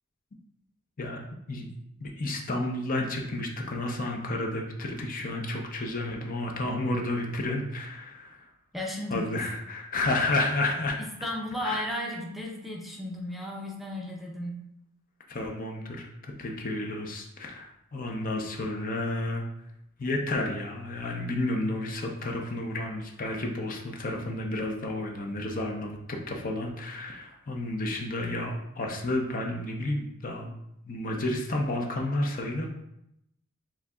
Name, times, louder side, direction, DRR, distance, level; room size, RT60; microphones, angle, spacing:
voice 1, 2.0-8.5 9.1-11.0 11.6-11.8 15.3-16.1 16.4-19.4 20.0-30.5 30.8-32.8, left 2 dB, 40° left, 1 dB, 0.6 m, -31 dB
voice 2, 8.7-9.2 11.2-14.6, left 1 dB, ahead, -2 dB, 0.6 m, -34 dB
7.0 x 2.8 x 2.3 m, 0.80 s
head